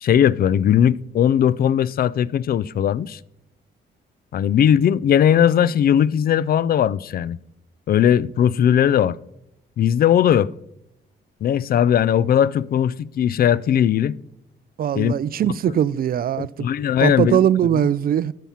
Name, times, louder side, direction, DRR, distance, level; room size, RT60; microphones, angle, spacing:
voice 1, 0.0-3.2 4.3-7.4 7.9-9.2 9.8-10.5 11.4-14.2 15.0-15.1 16.4-17.4 17.7-17.9, left 9 dB, 50° left, 0.4 m, -18 dB
voice 2, 14.8-16.7 17.0-18.3, right 10 dB, 50° right, 0.4 m, -20 dB
12.0 x 5.8 x 5.7 m
cardioid pair, 90°, 20 cm